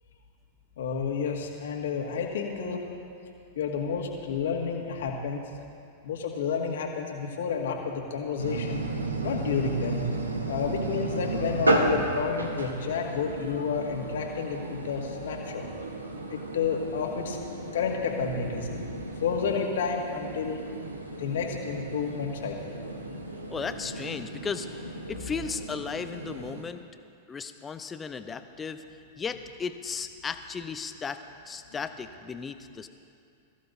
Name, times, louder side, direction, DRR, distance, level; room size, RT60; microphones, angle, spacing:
voice 1, 0.8-2.9 3.6-5.5 6.0-8.8 9.2-10.0 10.5-15.7 16.3-17.4 17.7-20.7 21.2-22.8, left 6 dB, 65° left, 1 dB, 1.9 m, -30 dB
sound 1, 8.4-26.6, right 2 dB, 85° right, 1.2 m, -33 dB
voice 2, 23.5-26.8 27.3-28.8 29.2-31.2 31.5-32.9, left 5 dB, 20° left, 9 dB, 0.7 m, -35 dB
22.0 x 14.5 x 2.7 m, 2.4 s
figure-of-eight pair, 95°, 0 cm